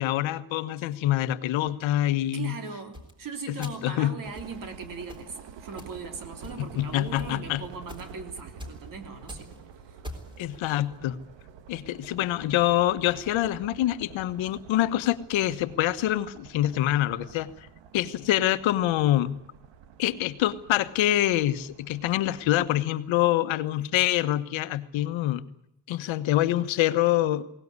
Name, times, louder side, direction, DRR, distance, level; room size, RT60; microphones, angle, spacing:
voice 1, 0.0-2.6 3.5-4.1 6.6-7.6 10.4-11.2 11.7-17.5 17.9-19.4 20.0-25.5 25.9-27.4, left 14 dB, 75° left, 11 dB, 1.3 m, -25 dB
voice 2, 2.3-9.6 9.8-10.0 12.2-12.3, right 5 dB, 45° right, 6 dB, 3.4 m, -39 dB
sound 1, 2.9-3.1 3.6-3.9 4.4-4.6 5.1-5.3 5.8-6.0 6.4-6.8 7.2-7.3 7.9-8.1 8.6-8.8 9.1-9.6 10.0-10.4, left 1 dB, 10° right, 3.8 m, -42 dB
sound 2, 4.2-22.8, right 7 dB, 65° right, 1.8 m, -48 dB
21.5 x 19.0 x 9.6 m, 0.79 s
cardioid pair, 170°, 47 cm